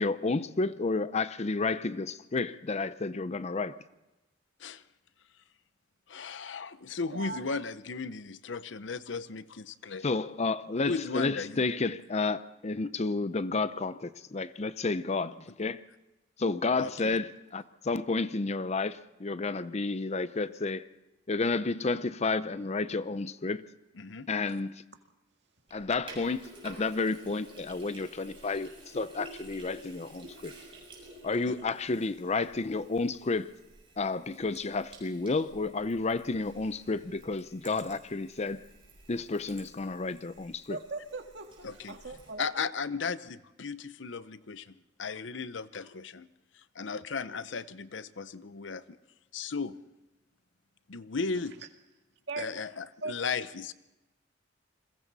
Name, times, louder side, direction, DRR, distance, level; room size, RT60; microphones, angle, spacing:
voice 1, 0.0-3.8 10.0-15.8 16.4-20.9 21.3-23.6 24.3-24.8 25.7-30.6 31.2-33.5 34.0-38.7 39.1-40.8, left 3 dB, 35° left, 0.6 m, -31 dB
voice 2, 6.1-10.0 10.9-11.6 11.9-12.0 15.6-15.7 16.8-17.2 24.0-24.3 31.5-31.6 41.6-42.0 42.4-46.3 46.5-49.0 49.3-49.8 50.9-51.6 52.4-53.7, left 4 dB, 70° left, 0.7 m, -36 dB
voice 3, 7.1-7.4 40.7-42.5 52.3-52.5 53.0-53.1, right 3 dB, 65° right, 2.1 m, -39 dB
Sink (filling or washing), 25.7-42.3, right 2 dB, 30° right, 7.4 m, -52 dB
29.5 x 22.0 x 4.1 m
head